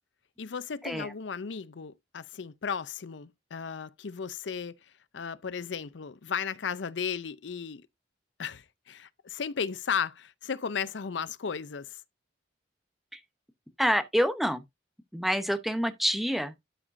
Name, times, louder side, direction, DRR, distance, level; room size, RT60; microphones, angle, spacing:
voice 1, 0.4-7.9 8.4-12.0, left 6 dB, 75° left, 0.6 m, -35 dB
voice 2, 13.8-14.6 15.1-16.5, equal, ahead, 0.8 m, -27 dB
12.0 x 5.0 x 2.6 m
head